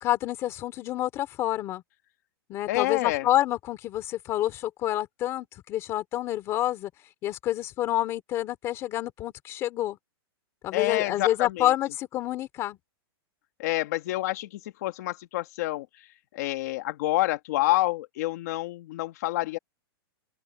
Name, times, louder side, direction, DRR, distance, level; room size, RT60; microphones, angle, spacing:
voice 1, 0.0-1.8 2.5-6.9 7.2-10.0 10.6-12.8, left 13 dB, 20° left, 2.6 m, -28 dB
voice 2, 2.7-3.3 10.7-11.7 13.6-19.6, left 17 dB, 40° left, 1.3 m, -28 dB
open air
supercardioid pair, 180°, 13 cm